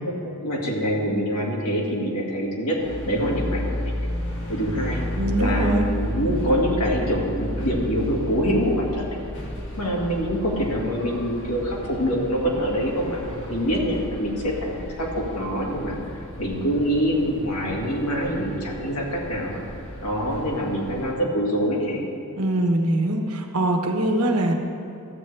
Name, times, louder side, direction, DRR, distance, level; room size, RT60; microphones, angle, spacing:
voice 1, 0.2-2.8 3.1-4.0 4.5-5.0 5.4-9.2 9.8-13.2 13.5-16.0 16.4-19.6 20.0-22.1, equal, 80° left, -3 dB, 1.9 m, -25 dB
sound 1, 2.8-21.1, left 1 dB, 60° left, 2.2 m, -33 dB
voice 2, 5.2-5.8 22.4-24.5, right 1 dB, 80° right, 3 dB, 1.1 m, -22 dB
13.5 x 8.2 x 3.3 m, 2.9 s
head